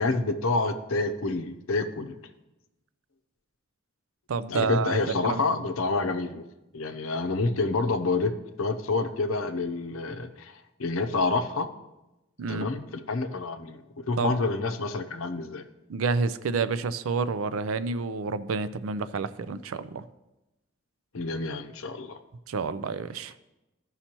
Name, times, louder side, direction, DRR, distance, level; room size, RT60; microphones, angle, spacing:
voice 1, 0.0-2.2 4.5-6.4 6.7-8.3 8.6-11.7 12.5-13.8 14.1-15.6 21.1-22.2, left 3 dB, 90° left, 9 dB, 0.7 m, -28 dB
voice 2, 4.3-5.4 12.4-12.7 14.2-14.3 15.9-20.0 22.5-23.3, right 4 dB, 90° right, 14 dB, 0.4 m, -29 dB
14.5 x 5.6 x 2.9 m, 0.99 s
head